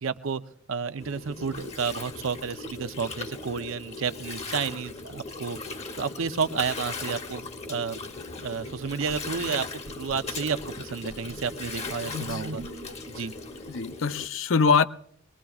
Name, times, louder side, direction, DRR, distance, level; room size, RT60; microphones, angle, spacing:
voice 1, 0.0-0.4 0.7-5.6 6.0-8.0 8.4-9.7 10.0-12.6 13.1-13.3, right 5 dB, 75° right, 0.6 m, -31 dB
Gurgling, 1.0-14.3, left 3 dB, 30° left, 0.9 m, -38 dB
sound 1, 9.8-13.0, right 1 dB, 60° right, 0.9 m, -44 dB
voice 2, 13.7-14.8, left 5 dB, 70° left, 0.5 m, -23 dB
23.5 x 19.5 x 2.4 m
head